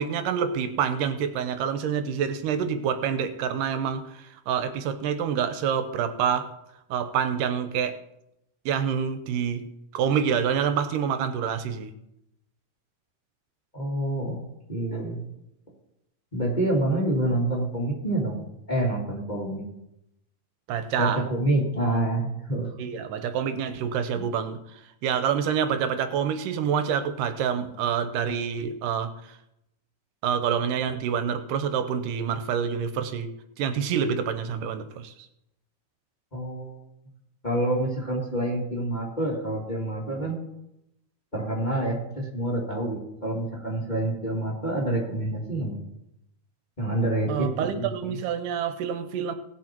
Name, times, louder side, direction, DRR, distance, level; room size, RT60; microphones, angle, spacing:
voice 1, 0.0-6.5 6.9-8.0 8.7-9.6 9.9-11.9 20.7-21.2 22.8-29.4 30.2-35.1 47.3-49.3, right 7 dB, 80° right, 9 dB, 2.4 m, -27 dB
voice 2, 13.7-14.4 14.7-15.2 16.3-18.4 18.7-19.6 21.0-22.7 36.3-36.8 37.4-40.4 41.3-45.8 46.8-47.9, right 1 dB, 15° left, -3 dB, 1.9 m, -27 dB
18.0 x 6.2 x 4.5 m, 0.84 s
omnidirectional pair, 3.8 m